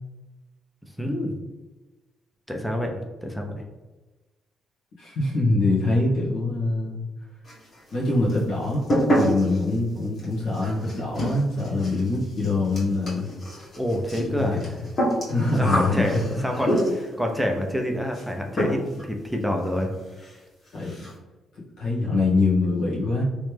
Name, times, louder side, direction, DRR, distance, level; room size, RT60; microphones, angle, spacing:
voice 1, 1.0-1.3 2.5-3.6 13.8-14.6 15.6-19.9 20.2-20.3, equal, ahead, 2 dB, 0.5 m, -27 dB
voice 2, 5.0-7.0 7.9-8.8 9.1-13.3 14.3-14.7 15.2-16.4 20.7-20.9 21.8-23.2, left 2 dB, 80° left, -6 dB, 1.3 m, -24 dB
sound 1, 7.4-8.0 8.3-17.2 18.1-18.3 18.6-19.1 19.3-19.4 19.8-19.9 20.2-20.4 20.7-21.1, equal, 45° left, 1.4 m, -28 dB
3.1 x 3.1 x 3.3 m, 1.2 s
cardioid pair, 90°, 0 cm